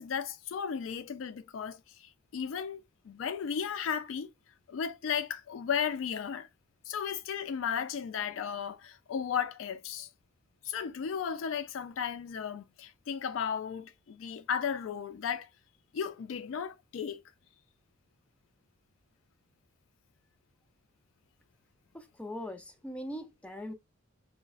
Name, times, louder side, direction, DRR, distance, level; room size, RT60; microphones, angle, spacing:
voice 1, 0.0-4.3 4.7-6.5 6.9-10.1 10.6-15.5 15.9-17.2, left 7 dB, 85° left, 0.4 m, -35 dB
voice 2, 21.9-23.7, left 1 dB, 5° left, 0.4 m, -41 dB
5.2 x 2.2 x 2.3 m
head